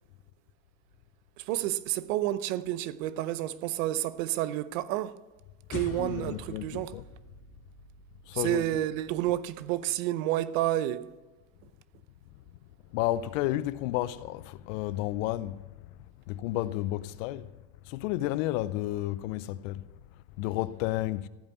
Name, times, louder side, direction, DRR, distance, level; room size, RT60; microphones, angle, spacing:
voice 1, 1.4-5.1 5.7-6.9 8.3-11.1, right 14 dB, 80° right, 0.8 m, -30 dB
voice 2, 5.7-7.0 8.3-8.8 12.9-15.9 16.3-17.5 17.8-19.8 20.4-21.3, left 15 dB, 80° left, 0.7 m, -32 dB
sound 1, 5.7-10.3, left 4 dB, 35° left, 1.6 m, -46 dB
15.0 x 5.3 x 8.3 m
supercardioid pair, 120°, 39 cm